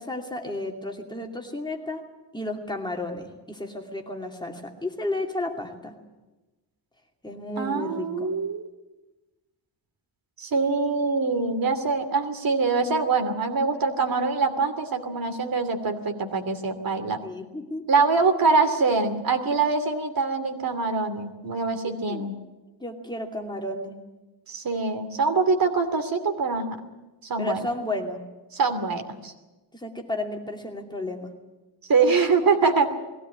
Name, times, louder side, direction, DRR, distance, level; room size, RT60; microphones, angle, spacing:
voice 1, 0.0-2.0 2.3-5.9 7.2-8.3 17.2-17.8 21.9-22.3 22.8-24.0 27.4-28.2 29.7-31.3, left 2 dB, 10° left, 2 dB, 2.5 m, -33 dB
voice 2, 7.6-8.7 10.4-17.2 17.9-22.3 24.5-26.8 27.2-27.7 28.5-29.3 31.8-32.9, right 4 dB, 50° right, 7 dB, 2.8 m, -24 dB
21.0 x 16.5 x 9.8 m, 1.1 s
wide cardioid pair, 145°, 43 cm